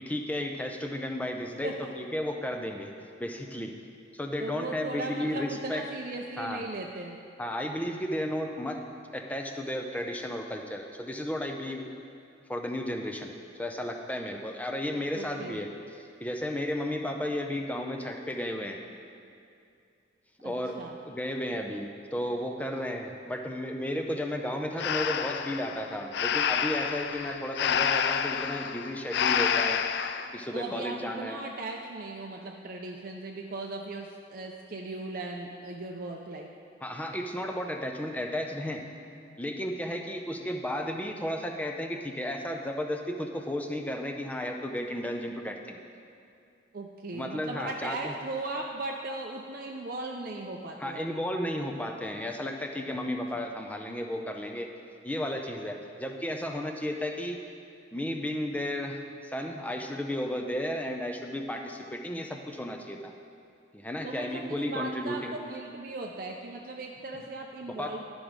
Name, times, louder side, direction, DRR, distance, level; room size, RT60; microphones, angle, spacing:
voice 1, 0.0-2.9 3.2-3.7 4.1-5.9 6.4-6.6 7.4-8.8 9.1-11.8 12.5-18.8 20.4-20.8 21.1-29.8 30.3-31.4 36.8-38.8 39.4-45.8 47.1-48.1 50.8-54.7 55.0-57.4 57.9-63.1 63.7-65.3 67.1-67.3 67.7-67.9, left 1 dB, 10° left, 3 dB, 0.5 m, -33 dB
voice 2, 4.4-7.2 15.1-15.6 20.4-21.0 30.5-36.5 46.7-51.2 64.0-68.0, right 2 dB, 50° right, 0 dB, 0.5 m, -38 dB
Breathing, 24.8-30.3, left 7 dB, 60° left, 0.3 m, -28 dB
11.5 x 6.1 x 5.1 m, 2.5 s
head